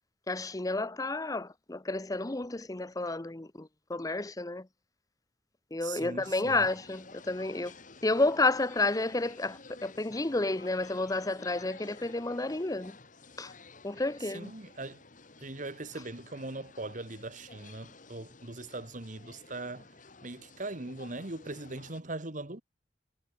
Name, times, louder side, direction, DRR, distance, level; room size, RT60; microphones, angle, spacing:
voice 1, 0.3-4.7 5.7-7.7 8.0-13.0 13.4-13.5 13.8-14.5, left 2 dB, 20° left, 0.8 m, -31 dB
voice 2, 5.8-6.7 14.2-15.0 15.4-19.9 20.2-22.6, right 2 dB, 50° right, 1.9 m, -40 dB
sound 1, 6.2-22.0, left 3 dB, 50° left, 3.0 m, -53 dB
head